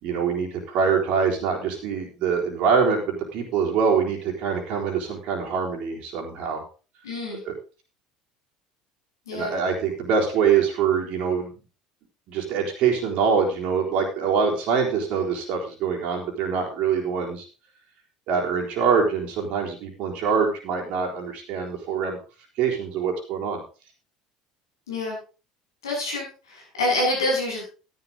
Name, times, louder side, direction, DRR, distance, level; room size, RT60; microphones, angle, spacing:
voice 1, 0.0-6.6 7.5-7.6 9.3-11.5 12.3-17.5 18.3-22.2 22.6-23.6, right 6 dB, 60° right, 0 dB, 3.9 m, -24 dB
voice 2, 7.0-7.4 9.3-9.5 24.9-25.2 25.8-27.6, left 1 dB, 85° left, -2 dB, 7.5 m, -26 dB
12.5 x 11.0 x 3.8 m, 0.34 s
hypercardioid pair, 70°, 2 cm